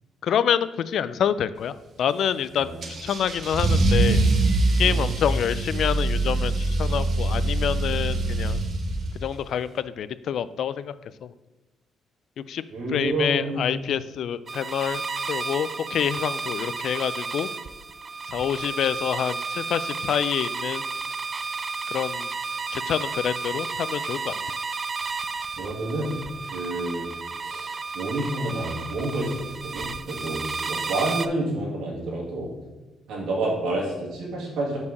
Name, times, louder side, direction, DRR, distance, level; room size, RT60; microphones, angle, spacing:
voice 1, 0.2-4.2 4.8-8.6 9.2-10.9 11.2-11.3 12.4-12.6 12.9-15.0 15.3-17.5 18.3-20.8 21.9-22.3 22.7-24.3, left 9 dB, 70° left, 15 dB, 0.3 m, -27 dB
Car / Engine starting / Accelerating revving vroom, 2.8-9.3, right 2 dB, 55° right, 1.2 m, -23 dB
voice 2, 12.7-13.6 25.6-26.1 26.5-27.1 27.4-32.5 33.1-34.8, right 2 dB, 80° right, -4 dB, 2.0 m, -29 dB
sound 1, 14.5-31.3, right 4 dB, 35° right, 0.4 m, -32 dB
5.6 x 4.6 x 6.4 m, 1.1 s
cardioid pair, 90°, 0 cm